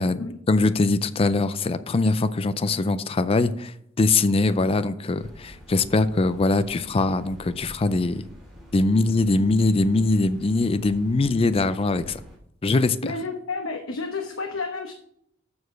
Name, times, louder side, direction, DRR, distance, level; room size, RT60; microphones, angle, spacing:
voice 1, 0.5-8.2 8.7-12.2 12.6-13.1, left 3 dB, 30° left, 13 dB, 0.4 m, -22 dB
sound 1, 5.1-12.4, equal, ahead, 2.8 m, -46 dB
voice 2, 13.0-14.9, left 3 dB, 90° left, 4 dB, 1.0 m, -31 dB
7.0 x 6.4 x 6.3 m, 0.73 s
head